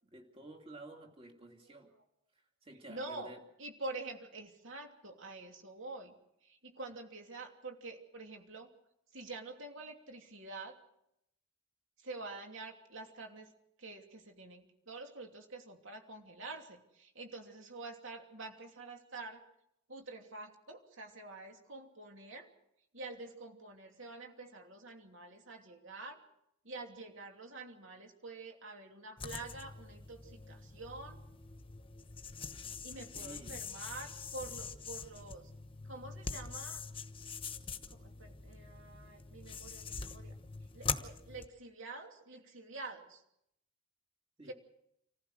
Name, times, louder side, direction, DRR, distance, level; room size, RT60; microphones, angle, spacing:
voice 1, 0.1-1.9 2.6-3.4 33.1-33.6 44.4-44.5, right 2 dB, 25° right, 2 dB, 2.7 m, -51 dB
voice 2, 2.9-6.1 6.4-8.7 9.1-10.8 12.0-13.5 13.8-19.4 19.9-22.5 22.9-26.2 26.6-31.2 32.8-35.5 35.8-36.8 37.9-40.3 40.7-43.2 44.5-44.6, right 2 dB, 60° right, 3 dB, 2.9 m, -47 dB
sound 1, 29.2-41.4, left 5 dB, 25° left, 1.1 m, -44 dB
27.5 x 15.0 x 6.4 m, 0.79 s
head